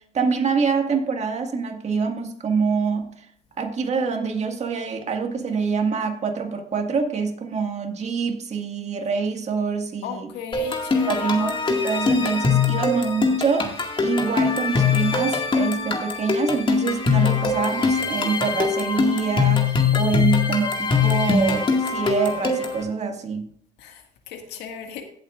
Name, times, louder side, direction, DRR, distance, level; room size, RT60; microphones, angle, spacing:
voice 1, 0.1-3.3 3.6-10.3 11.1-23.5, right 5 dB, 40° right, 4 dB, 1.9 m, -25 dB
voice 2, 10.0-11.3 23.8-25.0, left 7 dB, 85° left, 4 dB, 1.9 m, -36 dB
sound 1, 10.5-22.8, left 5 dB, 30° left, 2.0 m, -22 dB
16.5 x 8.0 x 2.5 m, 0.65 s
cardioid pair, 110°, 17 cm